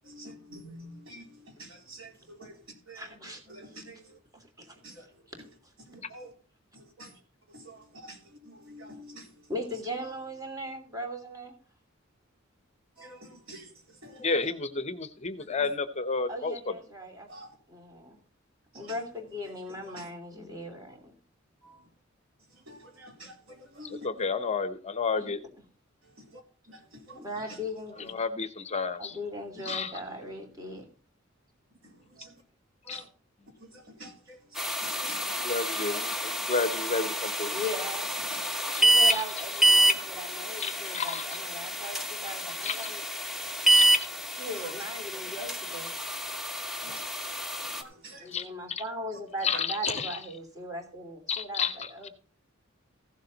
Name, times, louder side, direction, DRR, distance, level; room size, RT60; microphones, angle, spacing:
voice 1, 0.1-1.3 1.6-2.5 2.9-3.0 3.5-4.0 4.8-5.1 5.9-6.3 6.7-7.1 7.5-8.2 8.4-9.3 13.0-13.7 14.0-14.3 17.3-17.5 18.7-18.9 19.9-20.0 21.6-21.8 22.7-24.1 26.7-26.8 27.1-27.2 29.7-29.8 31.8-31.9 32.2-32.3 32.8-33.1 33.6-35.5 38.3-38.6 40.0-40.1 46.8-47.0 47.5-48.3, equal, 80° right, 4.0 m, -47 dB
voice 2, 2.9-3.4 4.3-4.8 5.6-5.7 9.5-11.5 16.3-17.3 17.7-18.2 18.7-21.1 25.2-25.3 27.1-28.2 29.0-30.9 37.5-38.2 38.8-43.0 44.3-45.9 48.2-52.1, equal, 20° right, 3.0 m, -38 dB
voice 3, 14.2-16.7 20.5-20.6 23.8-25.4 28.0-29.2 29.6-29.9 32.9-33.0 35.3-37.5 38.7-39.2 40.6-41.3 42.6-42.9 43.7-44.1 48.3-48.8 49.4-50.2 51.3-52.1, left 4 dB, 35° left, 0.8 m, -31 dB
sound 1, 34.6-47.8, right 1 dB, ahead, 1.1 m, -28 dB
15.5 x 7.4 x 4.0 m
head